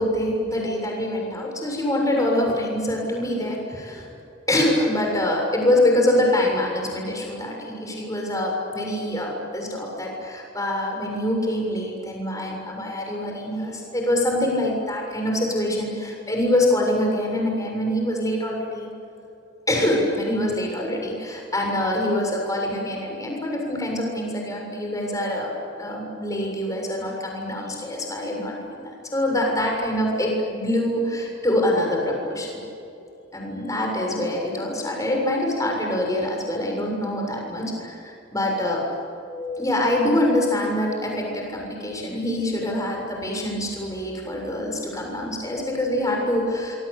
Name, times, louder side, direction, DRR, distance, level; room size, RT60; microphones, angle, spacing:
voice 1, 0.0-4.1 4.5-18.9 19.7-25.5 25.8-32.6 33.3-38.8 39.3-46.7, left 1 dB, 15° left, 0 dB, 7.1 m, -25 dB
26.5 x 24.0 x 8.5 m, 2.7 s
head